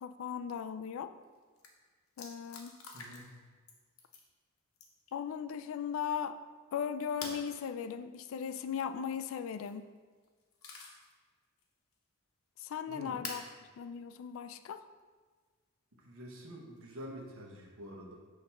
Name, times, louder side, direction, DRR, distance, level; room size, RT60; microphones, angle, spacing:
voice 1, 0.0-1.1 2.2-2.8 5.1-6.4 6.7-9.9 12.6-13.4 13.8-14.8, left 7 dB, 65° left, 11 dB, 0.3 m, -38 dB
sound 1, 1.2-1.3 1.6-1.7 2.2-3.4 3.7-4.3 4.8-5.1 7.2-7.5 9.4-9.8 10.2-11.1 11.6-11.7 13.2-13.5 14.6-14.7 16.8-17.2, left 4 dB, 85° left, 0.9 m, -46 dB
voice 2, 2.9-3.3 12.9-13.2 16.0-18.1, equal, 75° right, -1 dB, 1.2 m, -47 dB
6.5 x 2.9 x 5.5 m, 1.5 s
head